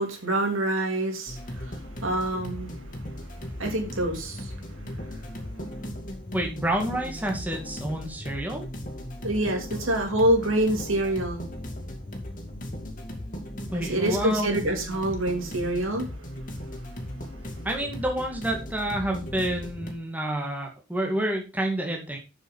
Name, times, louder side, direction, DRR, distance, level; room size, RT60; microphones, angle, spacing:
voice 1, 0.0-2.8 3.6-4.6 4.9-5.2 9.2-11.5 13.7-16.1, right 1 dB, 80° right, 2 dB, 3.3 m, -26 dB
sound 1, 1.3-19.9, left 1 dB, 40° left, 2.3 m, -37 dB
voice 2, 6.3-8.6 13.7-14.6 17.6-22.2, right 1 dB, 10° right, 1 dB, 2.0 m, -29 dB
8.0 x 7.1 x 5.5 m, 0.30 s
head